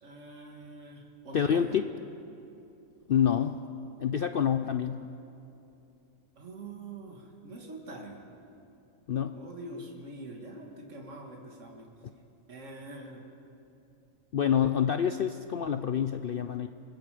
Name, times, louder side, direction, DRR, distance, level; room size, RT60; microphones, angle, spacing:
voice 1, 0.0-1.8 6.4-8.2 9.3-11.9 12.5-13.2, right 2 dB, 50° right, 0 dB, 2.5 m, -44 dB
voice 2, 1.3-1.9 3.1-3.6 4.0-5.0 9.1-9.4 14.3-16.7, left 8 dB, 75° left, 9 dB, 0.5 m, -27 dB
27.5 x 20.0 x 5.1 m, 2.8 s
omnidirectional pair, 1.6 m